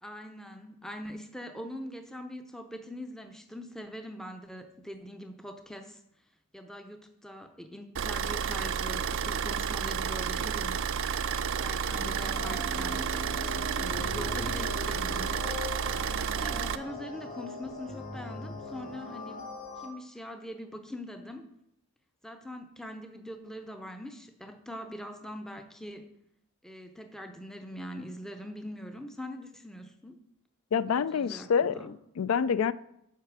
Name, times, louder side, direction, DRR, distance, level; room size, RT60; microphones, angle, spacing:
voice 1, 0.0-6.0 6.5-10.8 11.2-19.5 19.8-21.5 22.2-26.0 26.6-30.2 31.0-31.9, equal, ahead, 6 dB, 0.6 m, -43 dB
Car / Idling, 8.0-16.8, right 7 dB, 60° right, 0.4 m, -31 dB
sound 1, 11.9-19.9, left 2 dB, 40° left, 1.9 m, -40 dB
voice 2, 30.7-32.7, left 6 dB, 65° left, 17 dB, 0.4 m, -27 dB
8.2 x 5.6 x 6.1 m, 0.80 s
head